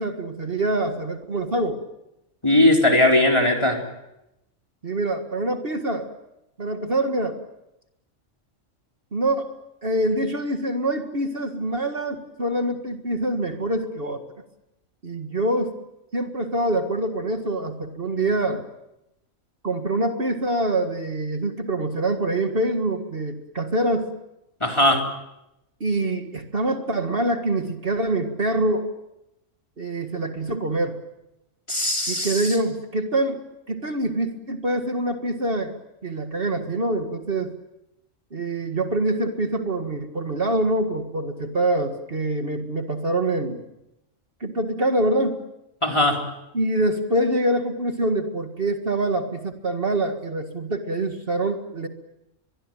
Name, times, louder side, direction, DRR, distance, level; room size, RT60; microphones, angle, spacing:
voice 1, 0.0-1.8 4.8-6.1 6.6-7.4 9.1-9.5 9.8-14.2 15.0-15.8 16.1-18.7 19.6-24.1 25.8-28.9 29.8-31.0 32.1-33.4 33.7-35.7 36.0-37.5 38.3-43.6 44.4-45.4 46.5-51.9, right 1 dB, 45° right, 6 dB, 2.0 m, -25 dB
voice 2, 2.4-3.8 24.6-25.0 31.7-32.4 45.8-46.2, left 1 dB, 20° left, 2 dB, 4.0 m, -19 dB
23.5 x 22.5 x 9.0 m, 0.89 s
omnidirectional pair, 1.3 m